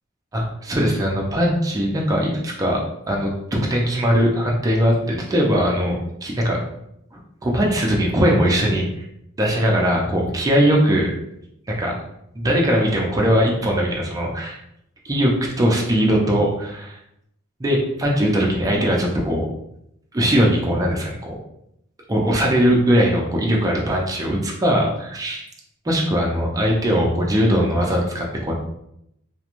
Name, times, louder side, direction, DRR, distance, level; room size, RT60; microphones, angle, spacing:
voice 1, 0.3-2.8 3.1-6.6 7.1-9.1 9.4-11.1 11.7-11.9 12.3-14.6 15.0-17.0 17.6-19.5 20.1-21.2 22.1-25.5 25.8-28.6, equal, 15° right, -2 dB, 0.4 m, -20 dB
2.4 x 2.1 x 2.9 m, 0.78 s
head